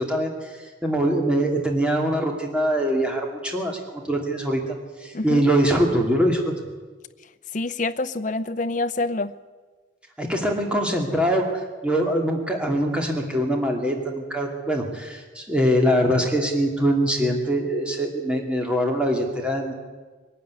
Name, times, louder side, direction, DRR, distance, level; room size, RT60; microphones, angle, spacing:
voice 1, 0.0-4.6 5.0-6.4 10.2-11.5 11.8-19.7, equal, 5° right, 1 dB, 2.7 m, -23 dB
voice 2, 7.5-9.4, left 2 dB, 40° left, 10 dB, 0.8 m, -26 dB
22.5 x 12.5 x 9.7 m, 1.4 s
head